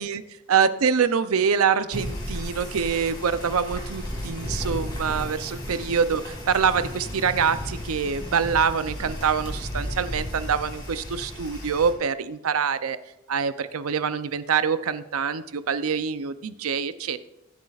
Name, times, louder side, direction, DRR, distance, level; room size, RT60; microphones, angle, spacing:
voice 1, 0.5-13.0 13.3-17.2, right 6 dB, 90° right, 13 dB, 0.6 m, -25 dB
sound 1, 1.9-11.9, equal, 20° left, 2.1 m, -34 dB
21.5 x 8.1 x 2.4 m, 0.97 s
head